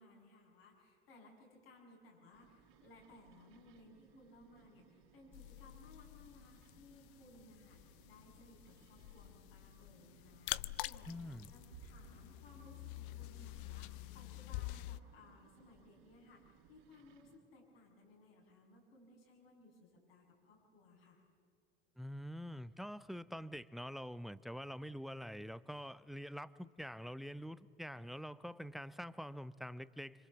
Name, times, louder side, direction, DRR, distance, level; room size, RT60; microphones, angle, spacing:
voice 1, 0.0-21.2, left 2 dB, 80° left, -1 dB, 7.6 m, -61 dB
sound 1, 2.3-17.4, right 8 dB, 60° right, 3.9 m, -65 dB
sound 2, 5.3-15.0, left 17 dB, 60° left, 0.6 m, -47 dB
voice 2, 11.1-11.5 22.0-30.3, equal, ahead, 16 dB, 0.7 m, -46 dB
27.0 x 26.0 x 7.2 m, 2.5 s
figure-of-eight pair, 65°, 29 cm